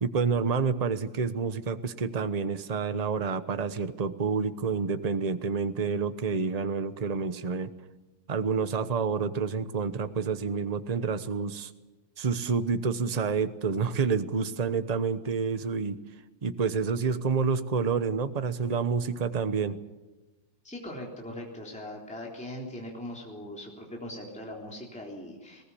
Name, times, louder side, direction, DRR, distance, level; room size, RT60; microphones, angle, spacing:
voice 1, 0.0-7.7 8.3-11.7 12.2-16.0 16.4-19.8, right 5 dB, 35° right, 11 dB, 0.7 m, -28 dB
voice 2, 20.6-25.6, left 1 dB, 5° left, -2 dB, 3.5 m, -40 dB
21.0 x 19.0 x 8.4 m, 1.1 s
omnidirectional pair, 2.1 m